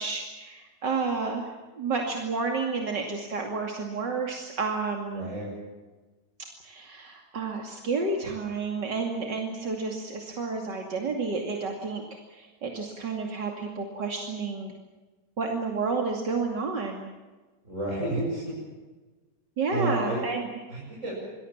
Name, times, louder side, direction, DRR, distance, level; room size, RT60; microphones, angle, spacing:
voice 1, 0.0-1.5 1.8-5.3 6.6-12.0 12.3-14.7 15.4-17.1 19.6-20.4, right 4 dB, 80° right, 2 dB, 3.2 m, -30 dB
voice 2, 5.1-5.5 17.6-18.5 19.7-20.2 20.7-21.2, right 1 dB, 45° right, -5 dB, 8.0 m, -30 dB
28.0 x 21.0 x 7.4 m, 1.2 s
omnidirectional pair, 1.8 m